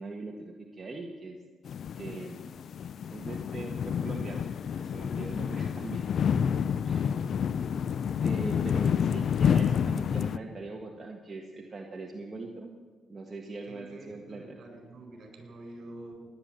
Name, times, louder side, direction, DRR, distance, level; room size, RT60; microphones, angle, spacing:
voice 1, 0.0-1.4 2.0-2.7 3.1-4.5 4.8-6.1 6.8-7.3 8.2-12.8 13.1-14.6, right 3 dB, 30° right, 0 dB, 1.7 m, -41 dB
sound 1, 1.6-10.4, left 7 dB, 60° left, 0.4 m, -29 dB
voice 2, 13.7-16.3, right 2 dB, 55° right, 3 dB, 4.5 m, -47 dB
17.0 x 10.5 x 7.6 m, 1.4 s
cardioid pair, 90°, 0 cm